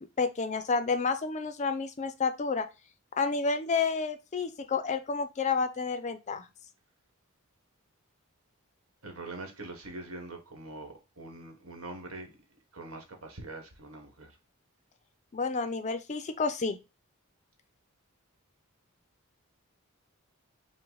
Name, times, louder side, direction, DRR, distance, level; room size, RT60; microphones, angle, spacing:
voice 1, 0.2-2.7 3.2-6.4 15.3-16.8, left 4 dB, 35° left, 0.5 m, -30 dB
voice 2, 9.0-12.3 12.7-14.4, right 2 dB, 75° right, 1.4 m, -43 dB
5.6 x 2.1 x 3.8 m
head